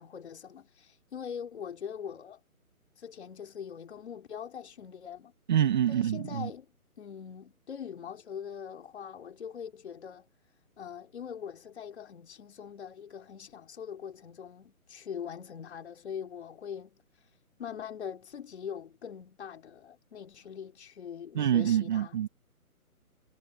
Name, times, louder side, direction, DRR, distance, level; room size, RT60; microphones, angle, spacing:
voice 1, 0.0-2.4 3.0-5.3 5.9-6.7 7.0-10.3 10.8-17.0 17.6-22.3, left 8 dB, 45° left, 4.3 m, -42 dB
voice 2, 5.5-6.5 21.3-22.3, right 10 dB, 30° right, 2.0 m, -26 dB
hypercardioid pair, 165°, 44 cm